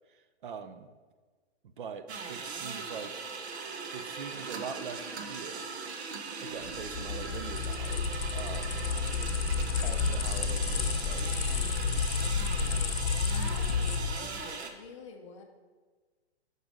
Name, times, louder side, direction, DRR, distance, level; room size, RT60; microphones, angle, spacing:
voice 1, 0.1-0.9 1.6-3.2 3.9-5.7 6.4-8.9 9.8-11.4 12.6-12.9, right 6 dB, 50° right, 10 dB, 0.5 m, -43 dB
sound 1, 2.1-14.7, right 4 dB, 80° right, 1.0 m, -39 dB
sound 2, 6.6-14.3, left 5 dB, 65° left, 0.7 m, -30 dB
voice 2, 13.3-15.4, left 4 dB, 30° left, 4 dB, 0.6 m, -47 dB
6.0 x 5.4 x 5.1 m, 1.4 s
hypercardioid pair, 165°, 32 cm